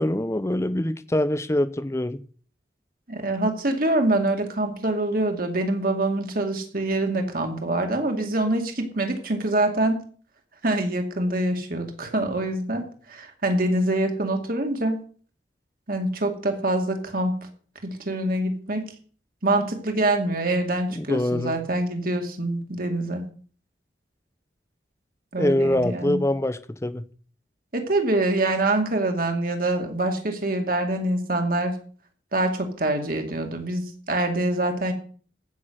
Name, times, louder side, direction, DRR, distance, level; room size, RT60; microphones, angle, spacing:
voice 1, 0.0-2.2 20.9-21.5 25.4-27.0, left 1 dB, 15° left, 0.6 m, -24 dB
voice 2, 3.1-10.0 10.6-15.0 15.9-17.4 17.8-18.9 19.4-23.3 25.3-26.2 27.7-31.8 32.3-34.9, right 2 dB, 55° right, 2.3 m, -25 dB
15.0 x 6.5 x 6.4 m
head